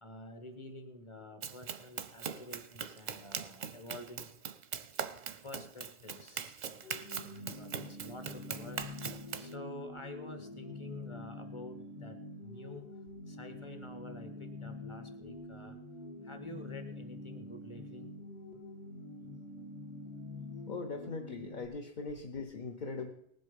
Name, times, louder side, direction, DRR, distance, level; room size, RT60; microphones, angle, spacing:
voice 1, 0.0-4.3 5.4-6.6 7.1-8.8 9.4-12.1 12.4-12.8 13.3-15.8 16.3-18.0, left 2 dB, 25° left, 7 dB, 1.4 m, -49 dB
Run, 1.4-9.5, right 7 dB, 45° right, 0.6 m, -41 dB
sound 1, 6.8-21.6, left 2 dB, 60° left, 1.9 m, -46 dB
voice 2, 20.7-23.1, left 4 dB, 45° left, 5 dB, 0.9 m, -40 dB
19.0 x 7.7 x 5.3 m, 0.74 s
omnidirectional pair, 1.2 m